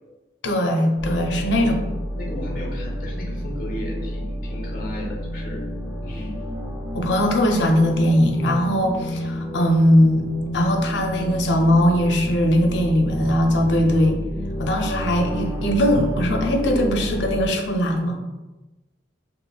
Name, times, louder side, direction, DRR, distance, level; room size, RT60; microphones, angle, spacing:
voice 1, 0.4-1.8 6.9-10.3 10.5-14.2 14.6-18.2, equal, 90° left, 3 dB, 0.5 m, -20 dB
sound 1, 1.0-17.5, equal, 5° right, 0.5 m, -29 dB
voice 2, 2.1-5.6 6.0-6.4, left 1 dB, 50° left, -2 dB, 0.8 m, -35 dB
5.5 x 2.0 x 2.3 m, 1.1 s
head